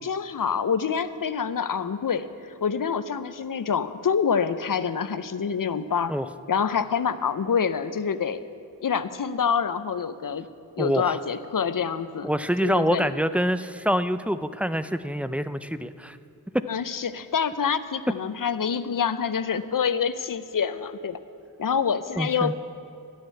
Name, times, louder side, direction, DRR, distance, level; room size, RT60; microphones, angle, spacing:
voice 1, 0.0-6.1 6.5-8.5 8.8-10.5 10.8-12.3 12.6-13.1 16.7-21.2 21.6-22.5, left 6 dB, 65° left, 13 dB, 0.6 m, -26 dB
voice 2, 10.8-11.2 12.2-16.2 22.2-22.5, equal, 5° right, 12 dB, 0.4 m, -26 dB
12.5 x 6.6 x 9.5 m, 2.4 s
wide cardioid pair, 50°, 36 cm